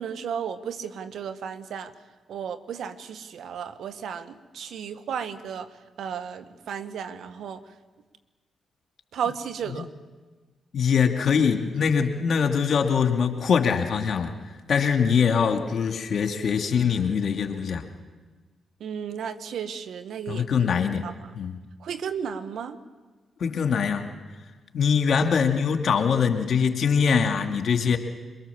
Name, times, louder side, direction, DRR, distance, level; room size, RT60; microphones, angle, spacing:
voice 1, 0.0-1.9 2.3-5.7 6.0-7.6 9.1-9.9 18.8-20.7 21.0-21.1 21.8-22.8, right 7 dB, 70° right, 10 dB, 1.5 m, -34 dB
voice 2, 10.7-17.8 20.3-21.0 21.4-21.6 23.4-24.1 24.7-28.0, left 6 dB, 65° left, 5 dB, 2.3 m, -23 dB
23.0 x 22.5 x 7.2 m, 1.3 s
hypercardioid pair, 40°, 0 cm